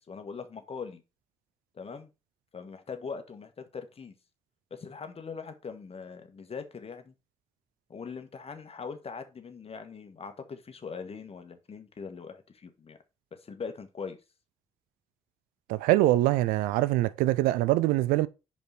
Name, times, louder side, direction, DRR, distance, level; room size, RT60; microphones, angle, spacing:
voice 1, 0.1-1.0 1.7-2.1 2.5-4.1 4.7-7.1 7.9-13.0 13.4-14.2, left 5 dB, 40° left, 1.5 m, -41 dB
voice 2, 15.7-18.3, right 16 dB, 80° right, 0.4 m, -24 dB
5.2 x 4.7 x 5.7 m
hypercardioid pair, 45°, 15 cm